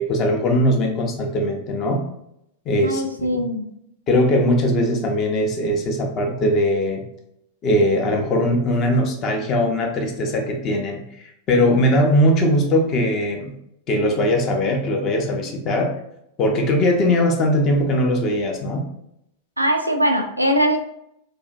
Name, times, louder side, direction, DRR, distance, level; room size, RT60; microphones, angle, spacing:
voice 1, 0.0-2.0 2.7-3.4 4.1-7.0 7.6-11.0 11.5-13.5 13.9-15.9 16.4-18.8, left 1 dB, 35° left, 2 dB, 0.5 m, -20 dB
voice 2, 2.8-3.7 19.6-20.8, equal, 85° right, 4 dB, 0.3 m, -21 dB
2.4 x 2.2 x 2.5 m, 0.76 s
figure-of-eight pair, 90°, 0 cm